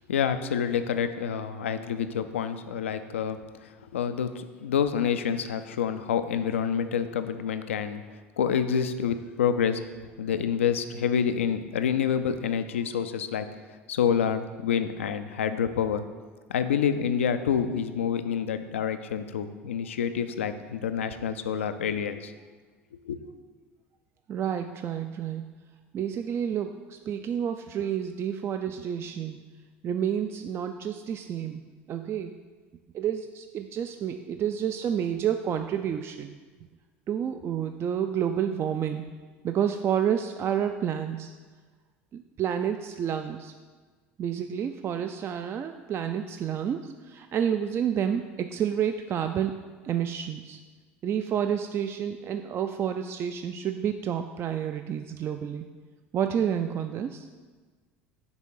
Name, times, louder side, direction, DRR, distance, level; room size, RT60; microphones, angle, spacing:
voice 1, 0.1-8.0 8.4-9.8 10.2-13.5 13.9-16.0 16.5-22.3 23.0-23.2, left 7 dB, 85° left, 10 dB, 0.4 m, -27 dB
voice 2, 24.3-25.5 25.9-29.5 29.8-32.4 32.9-36.4 37.1-39.1 39.4-41.3 42.1-43.5 44.2-50.6 51.0-55.7 56.1-57.3, right 9 dB, 40° right, 7 dB, 0.3 m, -29 dB
6.0 x 3.7 x 5.5 m, 1.4 s
hypercardioid pair, 75°, 7 cm